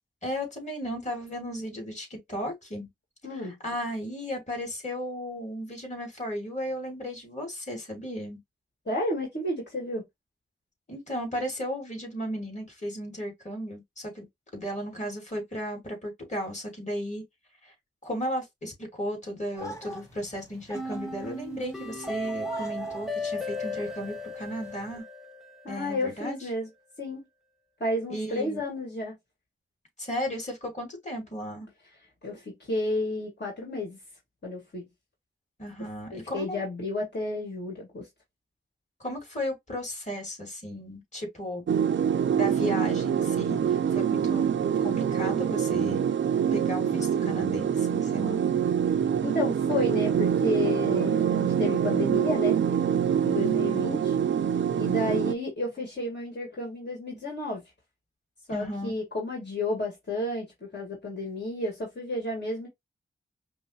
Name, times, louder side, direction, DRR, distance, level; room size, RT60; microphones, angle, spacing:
voice 1, 0.2-2.9 3.4-8.4 10.9-14.3 14.5-17.2 17.6-17.7 18.0-25.0 25.7-26.4 28.1-28.6 30.0-31.7 35.6-36.6 39.0-41.6 42.3-44.5 44.8-46.1 46.5-48.4 58.5-59.0, equal, 35° left, 2.4 m, -35 dB
voice 2, 3.2-3.6 8.9-10.0 25.6-26.7 27.0-27.2 27.8-29.1 32.2-34.0 34.4-34.8 36.1-38.1 49.2-52.6 53.2-54.2 54.8-57.6 58.5-62.7, left 2 dB, 55° left, 1.7 m, -31 dB
sound 1, 19.6-25.0, left 1 dB, 15° left, 1.5 m, -45 dB
sound 2, 20.7-25.8, left 1 dB, ahead, 1.0 m, -36 dB
sound 3, 41.7-55.3, right 8 dB, 65° right, 0.4 m, -25 dB
5.3 x 2.0 x 2.9 m
cardioid pair, 45°, 21 cm